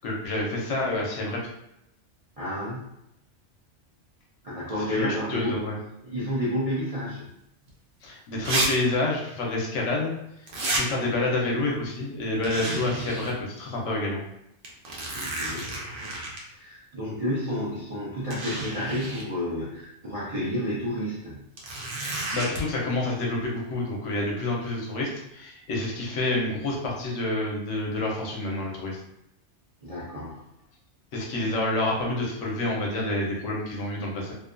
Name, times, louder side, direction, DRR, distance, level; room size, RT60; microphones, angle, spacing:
voice 1, 0.0-1.4 4.9-5.8 8.0-10.1 10.6-14.2 22.0-29.0 31.1-34.3, left 2 dB, 75° left, -2 dB, 1.0 m, -28 dB
voice 2, 2.4-2.9 4.4-5.6 6.0-7.3 15.1-15.7 16.5-21.5 29.8-30.5, left 1 dB, 50° right, -8 dB, 0.4 m, -30 dB
sound 1, 7.7-7.8 8.5-8.7 8.9-9.0 10.5-10.8 12.4-13.3 13.8-13.9 14.6-16.4 17.5-17.6 18.3-19.3 21.6-22.6, right 2 dB, 75° right, 1.0 m, -30 dB
2.6 x 2.2 x 2.4 m, 0.81 s
omnidirectional pair, 1.3 m